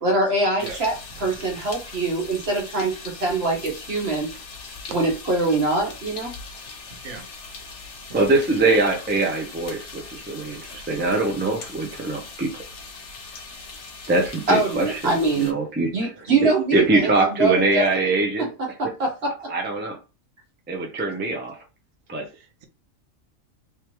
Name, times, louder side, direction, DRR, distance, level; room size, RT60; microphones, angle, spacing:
voice 1, 0.0-4.3 4.9-6.3 8.1-8.2 14.5-15.5 15.9-18.1 18.8-19.5, right 2 dB, 50° right, 1.5 m, -23 dB
sound 1, 0.6-15.5, left 4 dB, 60° left, 1.1 m, -40 dB
voice 2, 8.1-12.5 14.1-15.9 16.7-18.5 19.5-20.0 20.7-21.6 22.1-22.3, right 2 dB, 10° right, 0.5 m, -23 dB
voice 3, 22.3-22.6, right 4 dB, 80° right, 1.1 m, -39 dB
3.4 x 3.1 x 3.0 m
omnidirectional pair, 1.4 m